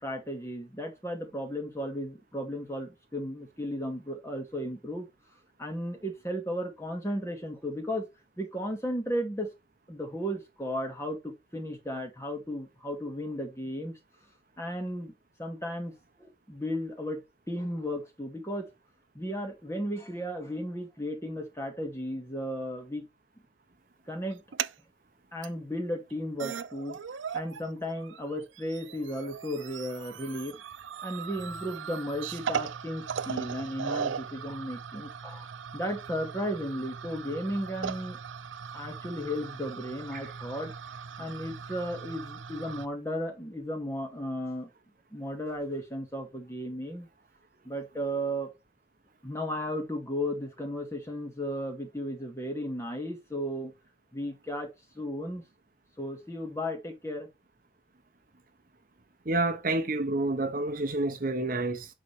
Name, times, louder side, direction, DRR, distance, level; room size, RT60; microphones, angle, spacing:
voice 1, 0.0-5.1 5.6-8.1 8.4-9.5 9.9-14.0 14.6-15.1 15.4-15.9 16.2-17.2 17.5-18.7 19.1-23.1 24.1-24.4 25.3-27.0 27.3-30.6 31.0-35.5 35.7-38.2 38.7-40.7 41.2-44.7 45.1-47.1 47.6-48.5 49.2-53.7 54.1-54.7 55.0-55.4 56.0-57.3, equal, 15° left, 2.3 m, -34 dB
sound 1, 24.3-24.7 25.4-25.5 26.1-26.2 26.4-27.6 27.9-42.9, right 7 dB, 85° right, 0.6 m, -38 dB
voice 2, 59.3-61.9, right 2 dB, 45° right, 0.9 m, -28 dB
9.9 x 4.1 x 4.8 m
head